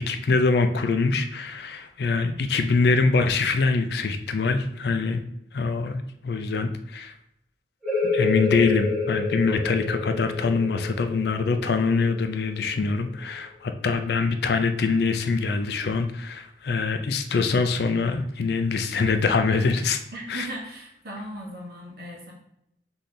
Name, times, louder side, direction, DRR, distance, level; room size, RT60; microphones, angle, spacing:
voice 1, 0.0-5.2 5.5-7.1 8.1-20.0 20.3-20.5, left 4 dB, 65° left, 8 dB, 0.4 m, -24 dB
sound 1, 7.8-13.2, left 4 dB, ahead, 1.7 m, -29 dB
voice 2, 20.1-22.3, right 1 dB, 60° right, -3 dB, 1.4 m, -37 dB
4.1 x 3.2 x 3.8 m, 0.78 s
head